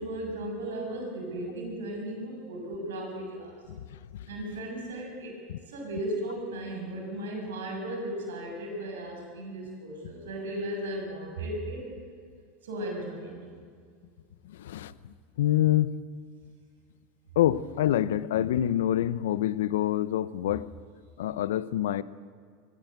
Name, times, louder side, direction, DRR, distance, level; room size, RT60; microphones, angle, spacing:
voice 1, 0.0-3.5 4.3-5.4 5.7-12.0 12.6-13.5, right 1 dB, 85° right, -1 dB, 7.2 m, -36 dB
voice 2, 14.4-15.9 17.4-20.6 21.2-22.0, left 12 dB, 80° left, 18 dB, 0.7 m, -26 dB
21.5 x 16.0 x 8.1 m, 2.1 s
hypercardioid pair, 100°, 0 cm